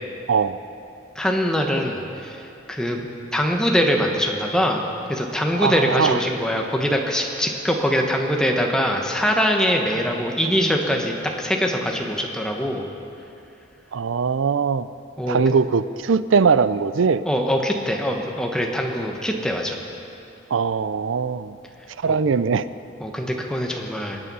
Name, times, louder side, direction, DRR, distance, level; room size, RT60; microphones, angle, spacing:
voice 1, 0.3-0.6 5.6-6.2 13.9-14.9 15.3-17.2 20.5-21.6 22.0-22.7, right 5 dB, 70° right, 15 dB, 0.4 m, -21 dB
voice 2, 1.1-3.1 3.3-4.8 5.1-12.8 15.2-15.6 17.2-19.8 22.1-22.2 23.0-24.2, equal, 5° left, 1 dB, 1.1 m, -23 dB
22.5 x 9.0 x 5.5 m, 2.8 s
head